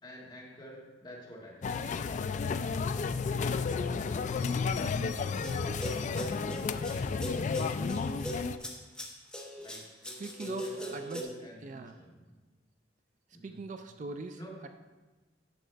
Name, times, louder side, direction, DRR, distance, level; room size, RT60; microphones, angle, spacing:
voice 1, 0.0-1.8 9.6-9.8 10.4-12.1 13.3-13.6 14.3-14.5, equal, 25° left, -4 dB, 1.8 m, -49 dB
sound 1, 1.6-8.6, left 5 dB, 40° left, 0.3 m, -32 dB
sound 2, 5.4-11.2, equal, 5° left, 1.0 m, -40 dB
voice 2, 10.2-12.0 13.4-14.7, right 3 dB, 45° right, 7 dB, 0.4 m, -42 dB
10.0 x 6.3 x 3.4 m, 1.2 s
head